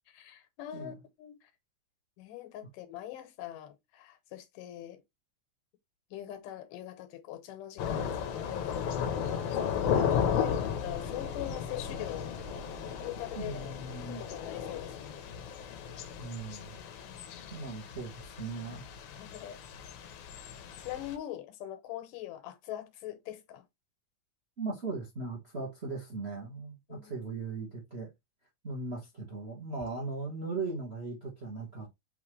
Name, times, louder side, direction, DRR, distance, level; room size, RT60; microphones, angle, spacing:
voice 1, 0.1-1.4 2.2-5.0 6.1-9.1 9.6-12.4 13.0-13.7 14.1-15.2 17.0-17.6 19.1-19.6 20.8-23.6 26.9-27.3, left 13 dB, 90° left, 2.5 m, -42 dB
Thunder / Rain, 7.8-21.2, left 7 dB, 75° left, 1.5 m, -35 dB
voice 2, 13.3-14.2 16.2-16.7 17.5-18.8 24.6-28.1 28.6-31.9, right 3 dB, 50° right, 0.7 m, -38 dB
5.7 x 2.9 x 3.1 m
omnidirectional pair, 3.6 m